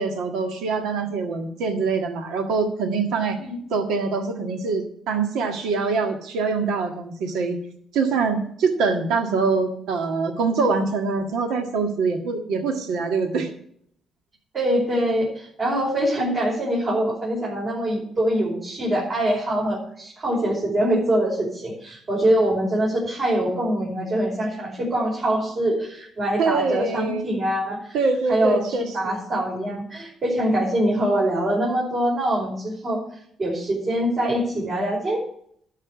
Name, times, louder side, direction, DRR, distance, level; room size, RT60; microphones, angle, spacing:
voice 1, 0.0-3.4 3.7-7.6 7.9-13.5 26.4-27.3 27.9-29.1, right 4 dB, 85° right, 5 dB, 1.7 m, -24 dB
voice 2, 14.5-28.0 28.3-28.6 28.9-33.0 33.4-35.2, right 1 dB, 45° right, -4 dB, 5.2 m, -24 dB
12.0 x 5.8 x 8.3 m, 0.66 s
cardioid pair, 90°, 0 cm